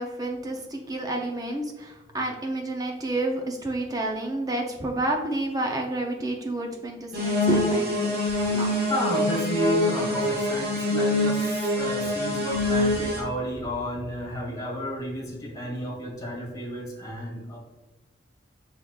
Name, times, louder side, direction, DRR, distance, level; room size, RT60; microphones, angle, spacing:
voice 1, 0.0-8.1 8.5-8.8, right 1 dB, 20° right, 2 dB, 0.4 m, -29 dB
sound 1, 7.1-13.2, left 1 dB, 50° right, 1.5 m, -25 dB
voice 2, 8.9-17.6, equal, 20° left, -3 dB, 1.3 m, -32 dB
6.3 x 3.5 x 2.3 m, 1.2 s
head